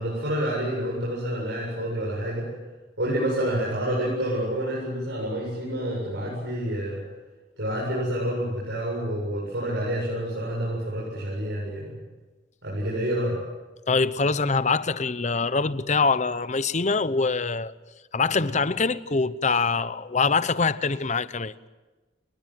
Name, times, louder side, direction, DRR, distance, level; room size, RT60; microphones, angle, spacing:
voice 1, 0.0-2.5 3.0-7.0 7.6-12.0 12.6-13.4, equal, 75° right, 7.9 m, -28 dB
voice 2, 13.9-17.7 18.1-21.5, left 4 dB, 40° left, 0.9 m, -24 dB
30.0 x 20.5 x 7.7 m
head